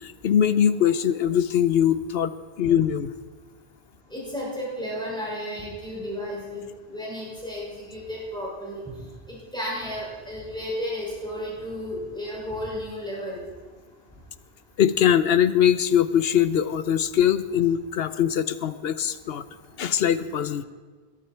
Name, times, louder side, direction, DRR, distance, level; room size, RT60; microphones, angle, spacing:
voice 1, 0.0-2.3 2.6-3.1 14.8-19.4 19.8-20.6, left 9 dB, 75° left, 14 dB, 0.9 m, -22 dB
voice 2, 4.1-8.8 9.3-13.4, equal, 5° left, -6 dB, 6.3 m, -33 dB
20.5 x 12.5 x 4.5 m, 1.4 s
omnidirectional pair, 1.0 m